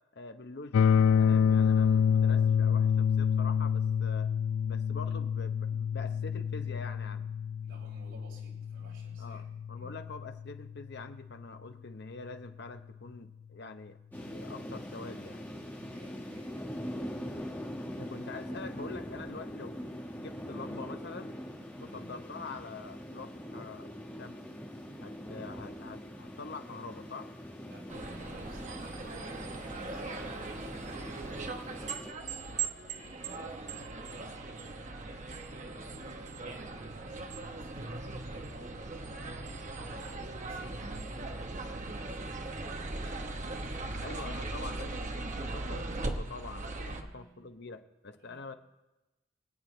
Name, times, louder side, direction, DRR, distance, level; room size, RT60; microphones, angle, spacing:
voice 1, 0.1-4.3 4.6-7.3 9.2-15.4 18.0-21.4 21.8-23.9 24.2-24.4 25.0-27.3 44.0-48.5, left 3 dB, 60° left, 8 dB, 0.9 m, -45 dB
sound 1, 0.7-10.7, left 7 dB, 80° left, 0.3 m, -28 dB
voice 2, 7.6-10.0 15.8-16.9 21.8-22.2 25.4-25.5 27.6-32.3 32.7-43.0 43.2-43.7 46.9-47.5 48.2-48.5, right 2 dB, 75° right, -3 dB, 4.3 m, -55 dB
sound 2, 14.1-32.1, equal, 10° left, 1.4 m, -43 dB
sound 3, 27.9-47.0, right 3 dB, 40° right, 1.1 m, -39 dB
24.5 x 9.0 x 3.3 m, 1.1 s
head